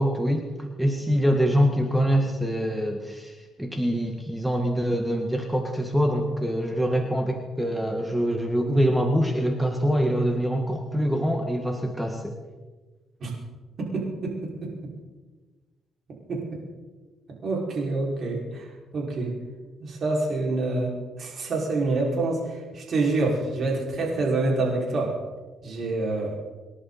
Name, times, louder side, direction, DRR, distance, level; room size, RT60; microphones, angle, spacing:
voice 1, 0.0-12.4, equal, 5° right, 4 dB, 1.6 m, -24 dB
voice 2, 13.8-14.7 16.3-16.6 17.4-18.7 18.9-19.3 19.8-20.9 21.2-25.1 25.6-26.3, right 2 dB, 55° right, -2 dB, 5.5 m, -27 dB
27.5 x 11.0 x 4.2 m, 1.3 s
cardioid pair, 90°, 0 cm